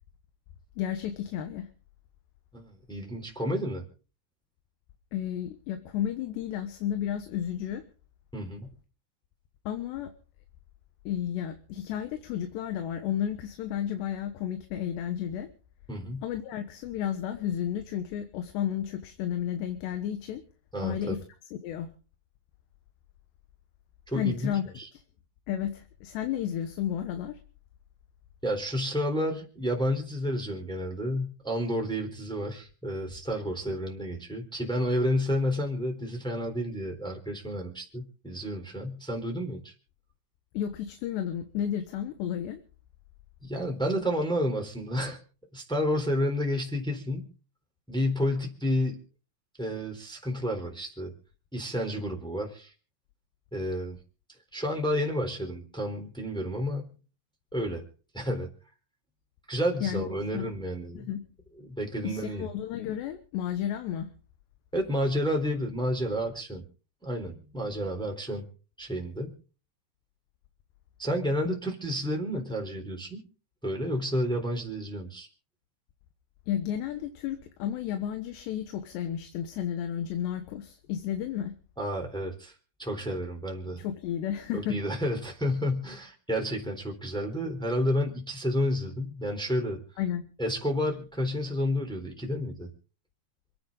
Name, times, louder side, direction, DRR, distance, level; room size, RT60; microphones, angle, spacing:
voice 1, 0.8-1.7 5.1-7.8 9.7-10.1 11.1-15.5 16.2-20.4 20.8-21.2 21.6-21.9 24.1-24.6 24.9-25.0 25.5-27.4 40.5-42.6 59.8-60.0 60.3-60.5 61.0-61.2 62.0-64.1 71.4-71.5 72.3-72.4 76.5-81.5 83.8-84.8 90.0-90.2, left 10 dB, 80° left, 7 dB, 3.4 m, -32 dB
voice 2, 2.5-3.8 8.3-8.7 15.9-16.2 20.7-21.1 24.1-24.5 24.8-24.9 28.4-39.7 43.4-45.2 45.5-47.3 47.9-49.0 49.6-51.1 51.5-52.7 53.5-54.0 54.5-56.9 57.5-57.8 58.1-58.5 59.5-61.1 61.6-62.5 64.7-66.6 67.0-68.4 68.8-69.3 71.0-73.2 73.6-75.3 81.8-82.5 82.8-83.8 84.5-89.8 90.4-92.7, equal, ahead, 2 dB, 3.1 m, -30 dB
28.0 x 9.6 x 3.9 m, 0.38 s
omnidirectional pair, 4.9 m